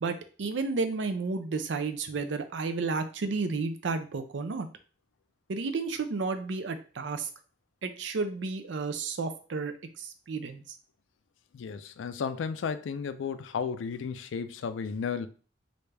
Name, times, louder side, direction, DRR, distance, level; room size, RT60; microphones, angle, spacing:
voice 1, 0.0-4.7 5.5-7.3 7.8-10.6, right 4 dB, 70° right, 0.5 m, -32 dB
voice 2, 11.5-15.3, left 6 dB, 80° left, 0.4 m, -33 dB
3.3 x 2.6 x 3.3 m
head